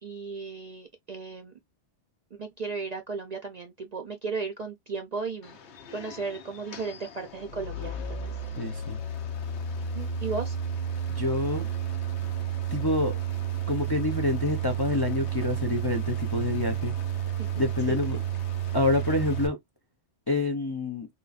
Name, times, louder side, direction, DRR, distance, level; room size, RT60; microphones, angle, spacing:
voice 1, 0.0-1.5 2.3-5.6 5.9-8.3 9.9-10.6 17.4-17.5, right 4 dB, 50° right, 0.5 m, -35 dB
sound 1, 5.4-19.5, right 8 dB, 70° left, 1.0 m, -32 dB
voice 2, 8.6-9.0 11.1-11.7 12.7-13.1 13.7-16.9 17.6-18.2 18.7-19.6 20.3-21.1, left 3 dB, 30° left, 0.4 m, -27 dB
3.8 x 2.7 x 2.4 m
omnidirectional pair, 1.2 m